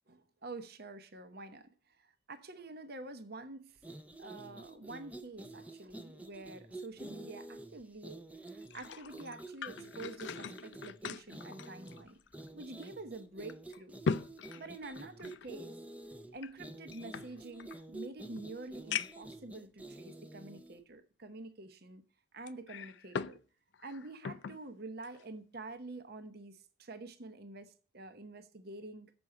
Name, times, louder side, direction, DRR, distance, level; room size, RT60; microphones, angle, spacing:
voice 1, 0.1-3.8 4.2-12.2 12.5-14.0 14.5-15.8 16.3-22.0 22.3-23.4 23.8-29.1, right 2 dB, 50° right, 0.8 m, -47 dB
sound 1, 3.8-20.8, right 2 dB, 5° right, 0.5 m, -49 dB
sound 2, 8.5-12.5 12.8-12.9 13.5-15.5 16.4-17.8 18.4-18.5 18.9-19.3 20.1-20.2 22.5-23.4 23.7-24.6 25.0-25.2, left 5 dB, 60° left, 0.4 m, -40 dB
7.1 x 6.1 x 7.7 m
head